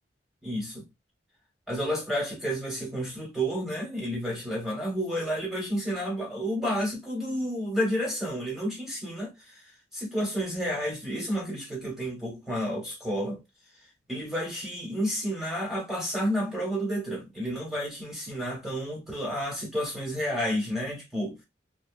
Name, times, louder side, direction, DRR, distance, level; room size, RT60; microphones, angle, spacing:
voice 1, 0.4-0.8 1.7-9.6 9.9-13.4 14.1-21.4, equal, ahead, 1.3 m, -31 dB
2.7 x 2.3 x 2.5 m
head